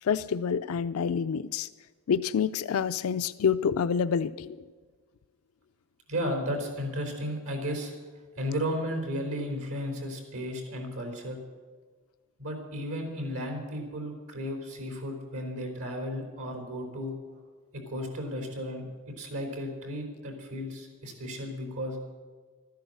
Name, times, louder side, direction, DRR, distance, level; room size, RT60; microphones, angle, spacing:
voice 1, 0.0-1.7 2.1-4.6, left 7 dB, 85° left, 13 dB, 0.4 m, -27 dB
voice 2, 6.1-7.9 8.4-11.4 12.4-17.1 17.7-18.8 19.2-22.0, equal, 90° right, 3 dB, 3.9 m, -34 dB
13.5 x 10.5 x 7.8 m, 1.5 s
head